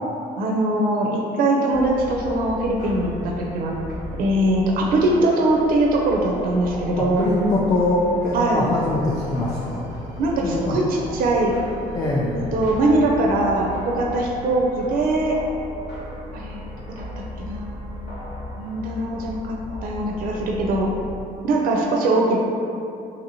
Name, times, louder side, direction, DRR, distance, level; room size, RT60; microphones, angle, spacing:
voice 1, 0.4-1.1 1.4-3.7 4.2-7.4 8.3-8.7 10.2-10.8 11.1-11.5 12.3-15.4 16.3-16.6 17.0-17.9 18.6-20.9 21.4-22.4, right 2 dB, 60° right, -1 dB, 0.4 m, -21 dB
sound 1, 1.7-21.2, left 1 dB, 70° left, 1.0 m, -36 dB
voice 2, 6.9-10.0 10.4-10.8 11.9-12.4, left 2 dB, 25° left, -5 dB, 0.3 m, -23 dB
2.9 x 2.6 x 2.8 m, 2.6 s
cardioid pair, 110°, 17 cm